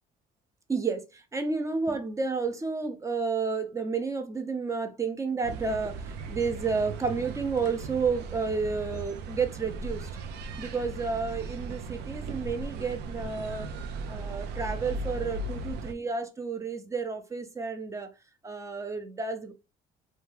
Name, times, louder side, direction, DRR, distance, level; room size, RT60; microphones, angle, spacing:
voice 1, 0.7-6.0 6.3-10.1 10.6-13.7 14.1-18.1 18.4-19.5, right 4 dB, 20° right, 0.5 m, -31 dB
sound 1, 5.4-15.9, right 3 dB, 80° right, 0.5 m, -37 dB
2.7 x 2.2 x 3.1 m
cardioid pair, 110°, 17 cm